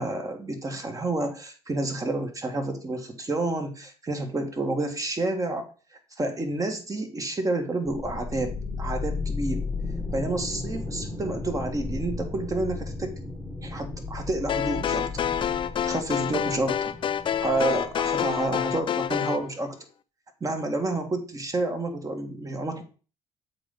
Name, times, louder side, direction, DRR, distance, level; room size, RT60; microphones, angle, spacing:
voice 1, 0.0-5.6 6.2-9.7 10.1-13.2 13.6-15.2 15.8-16.9 17.4-19.8 20.4-22.8, right 2 dB, 30° right, 5 dB, 1.6 m, -29 dB
sound 1, 7.9-19.2, left 3 dB, 5° left, 1.3 m, -35 dB
sound 2, 14.5-19.4, left 9 dB, 40° left, 0.4 m, -27 dB
7.5 x 3.9 x 3.7 m, 0.36 s
supercardioid pair, 65°, 12 cm